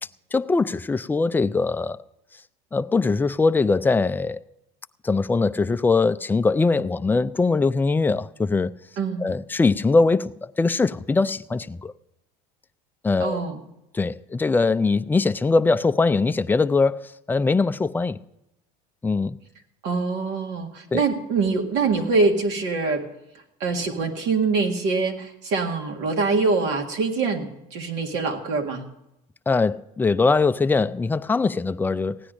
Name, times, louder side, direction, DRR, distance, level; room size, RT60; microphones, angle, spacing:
voice 1, 0.3-2.0 2.7-4.4 5.0-8.7 9.2-11.9 13.0-13.5 13.9-17.0 17.3-18.2 19.0-19.4 20.9-21.0 29.5-32.2, left 3 dB, 10° left, 0.4 m, -21 dB
voice 2, 9.0-9.3 13.2-13.6 19.8-23.1 23.6-28.9, right 4 dB, 65° right, 1.8 m, -24 dB
16.0 x 9.9 x 5.1 m
supercardioid pair, 110°, 19 cm